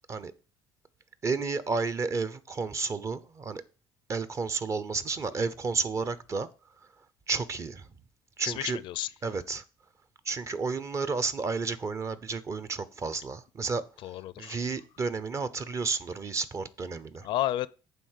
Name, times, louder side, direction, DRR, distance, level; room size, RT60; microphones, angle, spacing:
voice 1, 1.2-3.6 4.1-6.5 7.3-7.9 8.4-8.8 9.2-9.6 10.2-13.8 14.4-17.3, right 4 dB, 35° right, 0.8 m, -31 dB
voice 2, 8.4-9.1 14.0-14.7 17.2-17.7, left 14 dB, 70° left, 0.5 m, -31 dB
9.2 x 3.6 x 6.6 m
cardioid pair, 105°, 9 cm